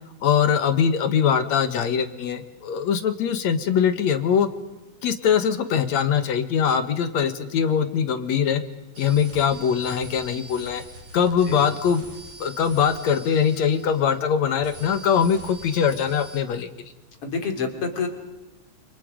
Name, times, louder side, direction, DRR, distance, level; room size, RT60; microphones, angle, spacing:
voice 1, 0.2-4.5 5.0-8.6 9.0-10.8 11.1-12.0 12.4-16.7, left 7 dB, 65° left, 9 dB, 2.5 m, -22 dB
sound 1, 9.0-14.3 14.6-16.4, right 3 dB, 75° right, 5.8 m, -44 dB
voice 2, 17.2-18.1, left 5 dB, 45° left, 4 dB, 4.0 m, -27 dB
28.5 x 28.5 x 5.2 m, 1.1 s
omnidirectional pair, 3.5 m